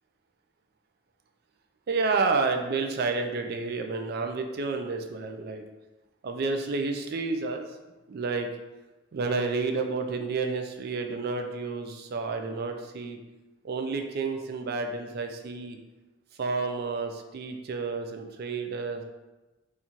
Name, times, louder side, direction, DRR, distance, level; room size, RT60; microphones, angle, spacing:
voice 1, 1.9-5.6 6.2-7.7 8.1-8.5 9.1-13.2 13.6-15.8 16.4-19.0, right 4 dB, 50° right, 5 dB, 0.4 m, -30 dB
4.3 x 2.4 x 2.8 m, 1.1 s
head